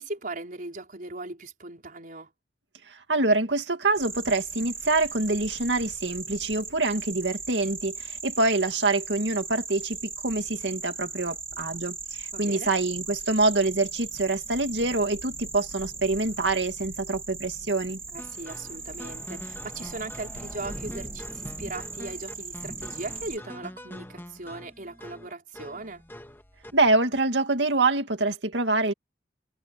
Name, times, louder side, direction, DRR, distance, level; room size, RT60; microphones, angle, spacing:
voice 1, 0.0-2.3 12.3-12.7 18.1-26.1, right 2 dB, 50° right, 4.8 m, -39 dB
voice 2, 2.9-18.0 26.7-28.9, right 2 dB, 80° right, 2.3 m, -25 dB
sound 1, 3.9-23.4, right 3 dB, 15° right, 1.9 m, -38 dB
sound 2, 18.2-26.9, left 1 dB, 15° left, 2.4 m, -45 dB
head